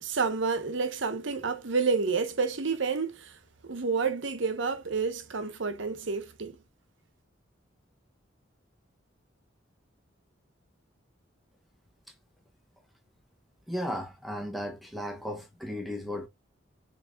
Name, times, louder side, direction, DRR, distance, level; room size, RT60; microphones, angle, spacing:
voice 1, 0.0-3.3 3.7-6.5, right 4 dB, 75° right, 0.9 m, -29 dB
voice 2, 13.7-16.3, equal, ahead, 0.9 m, -35 dB
7.2 x 3.2 x 2.3 m
head